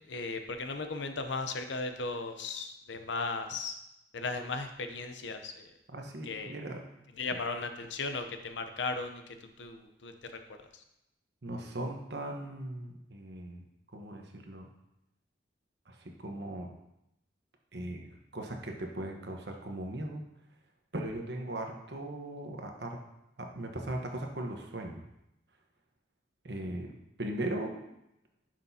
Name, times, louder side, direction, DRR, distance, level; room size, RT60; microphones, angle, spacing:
voice 1, 0.0-3.8 4.1-5.7 6.2-6.5 7.2-9.2 9.6-10.3 10.6-10.8, left 3 dB, 75° left, 7 dB, 0.7 m, -36 dB
voice 2, 5.9-6.9 11.4-13.6 13.9-14.7 15.9-16.7 17.7-20.2 20.9-23.0 23.4-25.0 26.4-26.9 27.2-27.8, right 1 dB, 60° right, 2 dB, 1.1 m, -38 dB
10.5 x 6.0 x 2.8 m, 0.85 s
head